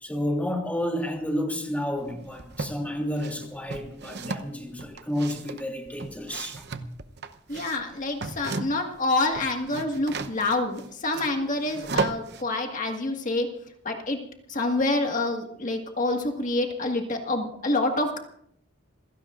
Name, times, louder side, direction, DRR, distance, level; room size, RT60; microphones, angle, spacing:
voice 1, 0.0-6.6, equal, 5° left, 1 dB, 2.9 m, -30 dB
sound 1, 2.0-2.8 3.2-9.0 9.2-12.4, right 4 dB, 55° right, 0.9 m, -35 dB
voice 2, 7.5-13.5 13.8-14.2 14.5-18.2, left 2 dB, 40° left, 2 dB, 1.8 m, -27 dB
27.5 x 16.5 x 2.5 m, 0.67 s
head